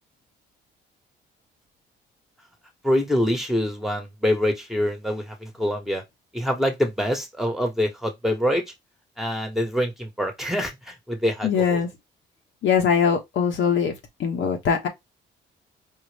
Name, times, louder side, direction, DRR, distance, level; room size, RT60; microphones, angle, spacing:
voice 1, 2.8-6.0 6.3-8.6 9.2-11.8, equal, ahead, 1.4 m, -25 dB
voice 2, 11.4-11.9 12.6-13.9 14.2-14.9, left 7 dB, 70° left, 1.4 m, -21 dB
4.7 x 2.5 x 3.3 m
cardioid pair, 90°, 20 cm